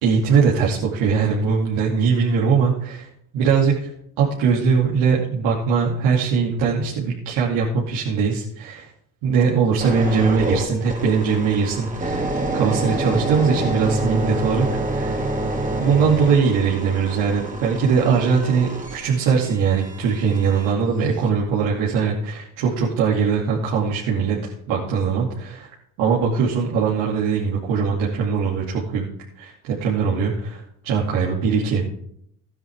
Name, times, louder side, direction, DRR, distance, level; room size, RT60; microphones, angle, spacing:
voice 1, 0.0-3.1 3.3-3.9 4.2-8.9 9.2-15.2 15.8-25.7 26.0-29.1 29.4-29.5 29.8-31.9, right 5 dB, 75° right, -6 dB, 2.9 m, -21 dB
sound 1, 9.8-20.7 21.3-21.5, right 2 dB, 15° right, 2.4 m, -27 dB
15.5 x 10.5 x 3.7 m, 0.70 s
supercardioid pair, 80°, 48 cm